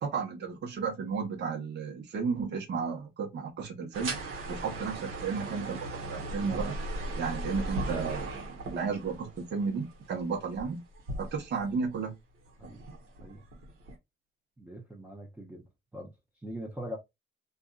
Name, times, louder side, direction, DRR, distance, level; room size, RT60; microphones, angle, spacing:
voice 1, 0.0-4.2 4.5-6.7 7.2-10.8 11.2-12.2, right 5 dB, 60° right, 1.0 m, -33 dB
sound 1, 3.9-11.9 12.5-13.9, right 1 dB, 85° right, 1.0 m, -38 dB
voice 2, 14.6-16.1 16.4-17.0, equal, 10° right, 0.6 m, -42 dB
2.6 x 2.4 x 2.3 m
cardioid pair, 90°, 20 cm